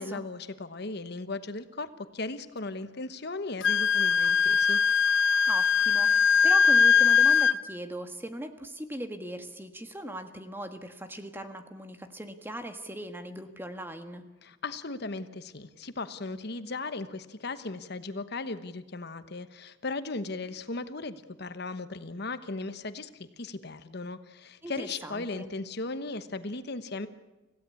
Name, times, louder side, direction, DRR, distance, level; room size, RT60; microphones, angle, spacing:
voice 1, 0.0-1.9 2.1-4.8 14.4-27.1, left 3 dB, 55° left, 11 dB, 1.1 m, -37 dB
Wind instrument woodwind instrument, 3.6-7.6, left 6 dB, 75° left, 0.7 m, -21 dB
voice 2, 5.5-14.2 24.6-25.5, right 1 dB, 10° right, 8 dB, 1.5 m, -39 dB
26.0 x 16.5 x 8.4 m, 1.1 s
head